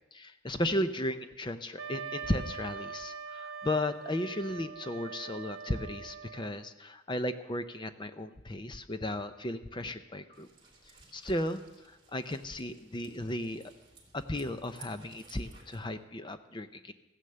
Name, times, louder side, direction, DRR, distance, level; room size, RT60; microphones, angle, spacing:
voice 1, 0.1-10.5 11.1-13.6 14.1-16.9, left 1 dB, 20° left, 10 dB, 0.6 m, -35 dB
Wind instrument woodwind instrument, 1.8-6.7, right 6 dB, 70° right, 1.2 m, -43 dB
sound 1, 10.3-15.8, right 4 dB, 25° right, 2.7 m, -58 dB
15.0 x 9.7 x 6.8 m, 1.0 s
head